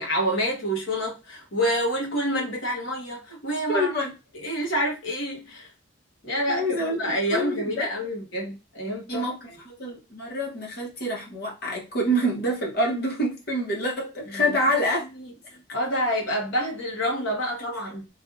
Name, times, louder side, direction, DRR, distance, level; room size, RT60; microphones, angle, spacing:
voice 1, 0.0-3.9 4.4-5.7 6.2-6.7 7.0-9.5 14.3-14.5 15.7-18.1, equal, 75° left, 1.2 m, -27 dB
voice 2, 3.7-4.1 6.5-7.9 9.1-9.4 9.6-15.0 15.4-15.6, equal, 50° left, 1.1 m, -27 dB
3.4 x 2.4 x 2.5 m
head